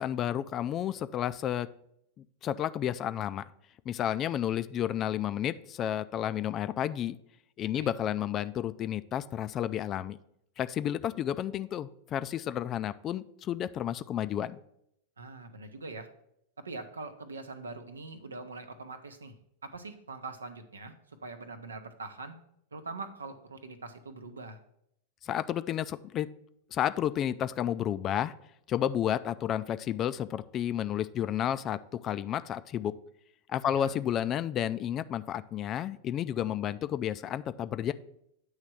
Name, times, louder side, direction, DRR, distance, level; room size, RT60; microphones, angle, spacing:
voice 1, 0.0-1.7 2.2-3.4 3.9-7.2 7.6-10.2 10.6-14.6 25.2-26.3 26.7-28.3 28.7-32.9 33.5-37.9, left 10 dB, 35° left, 14 dB, 0.3 m, -31 dB
voice 2, 15.2-16.1 16.6-19.3 19.6-22.4 22.7-24.6 33.7-33.9, right 3 dB, 80° right, 9 dB, 0.7 m, -43 dB
8.8 x 3.2 x 6.2 m, 0.76 s
figure-of-eight pair, 90°, 0 cm